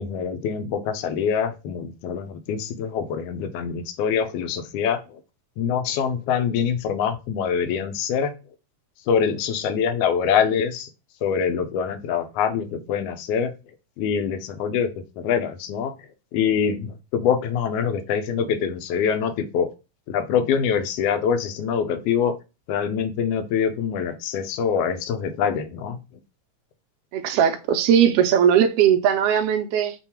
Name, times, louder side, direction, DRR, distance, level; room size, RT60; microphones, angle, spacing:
voice 1, 0.0-5.0 5.6-8.3 9.1-10.9 11.2-13.5 14.0-14.9 15.2-15.9 16.3-19.7 20.1-22.3 22.7-26.0, left 7 dB, 90° left, 1.4 m, -24 dB
voice 2, 27.1-29.9, right 9 dB, 85° right, 1.3 m, -19 dB
5.3 x 2.2 x 4.2 m
omnidirectional pair, 3.4 m